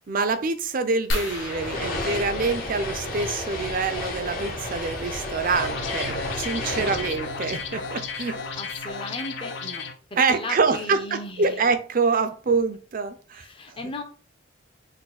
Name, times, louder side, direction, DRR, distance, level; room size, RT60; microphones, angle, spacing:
voice 1, 0.1-8.4 10.2-13.5, right 4 dB, 45° right, 0.5 m, -26 dB
sound 1, 1.1-3.5 5.1-5.2 5.8-5.9 6.2-6.4, left 1 dB, 85° left, 1.5 m, -33 dB
sound 2, 1.1-8.6, left 2 dB, 50° left, 1.0 m, -33 dB
sound 3, 5.5-9.9, left 4 dB, 65° left, 0.6 m, -33 dB
voice 2, 6.7-7.1 8.5-9.8 10.1-11.6 13.3-14.0, left 2 dB, 25° left, 0.7 m, -36 dB
4.6 x 2.2 x 4.0 m
head